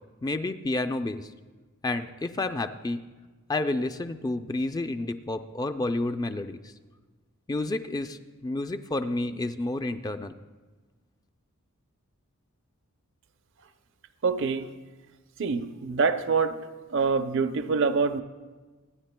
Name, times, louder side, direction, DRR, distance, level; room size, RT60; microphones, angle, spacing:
voice 1, 0.2-1.3 1.8-3.0 3.5-6.7 7.5-10.3, left 2 dB, 15° left, 0.4 m, -30 dB
voice 2, 14.2-14.7 15.4-16.7 16.9-18.2, right 4 dB, 60° right, 0.5 m, -25 dB
27.0 x 10.0 x 2.2 m
head